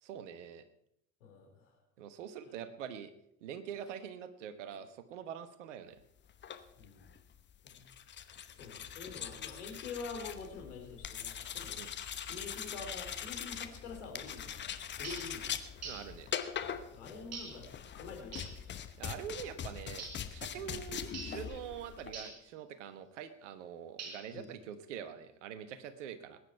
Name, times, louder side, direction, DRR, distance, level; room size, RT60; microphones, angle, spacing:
voice 1, 0.0-0.6 2.0-3.1 3.4-6.0 11.8-11.9 15.8-16.3 19.0-20.0 20.3-26.4, right 8 dB, 65° right, 12 dB, 1.2 m, -44 dB
voice 2, 1.2-1.6 2.4-2.5 4.7-4.8 6.8-7.1 7.6-7.8 8.6-11.8 12.2-14.5 15.0-15.5 16.9-17.7 17.9-18.6 20.5-20.7 24.3-24.5, left 4 dB, 65° left, 2 dB, 3.4 m, -46 dB
sound 1, 6.3-22.3, left 8 dB, 30° left, 1.0 m, -42 dB
sound 2, 15.0-15.3 15.8-16.1 17.3-17.6 18.3-18.6 20.0-20.3 21.1-21.4 22.1-22.4 24.0-24.4, right 4 dB, 40° right, 4.5 m, -44 dB
20.0 x 9.8 x 4.6 m, 0.78 s
figure-of-eight pair, 65°, 39 cm